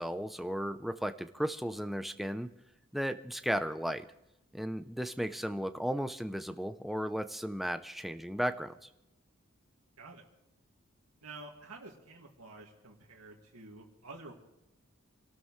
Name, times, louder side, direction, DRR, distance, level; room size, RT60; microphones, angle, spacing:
voice 1, 0.0-2.5 2.9-4.0 4.5-8.9, equal, ahead, 9 dB, 0.6 m, -35 dB
voice 2, 11.2-14.3, right 3 dB, 85° right, -1 dB, 2.2 m, -49 dB
27.0 x 13.0 x 3.2 m, 0.91 s
head